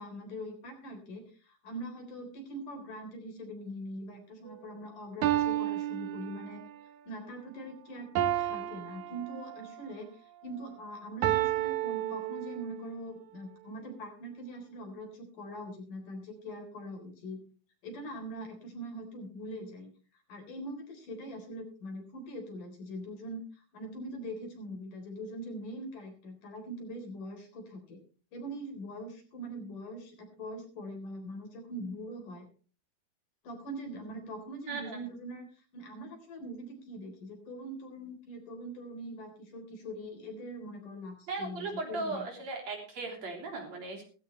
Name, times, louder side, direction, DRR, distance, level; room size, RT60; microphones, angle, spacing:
voice 1, 0.0-6.6 7.1-17.4 17.8-19.9 20.3-23.4 23.7-28.0 28.3-32.5 33.4-35.5 35.7-42.3, equal, 80° left, 3 dB, 5.5 m, -42 dB
sound 1, 4.5-4.6 5.2-6.8 8.2-9.8 11.2-12.8, right 13 dB, 75° right, 2.2 m, -31 dB
voice 2, 34.7-35.0 41.3-44.0, right 3 dB, 55° right, 1 dB, 4.7 m, -37 dB
17.0 x 15.0 x 3.3 m, 0.37 s
omnidirectional pair, 3.6 m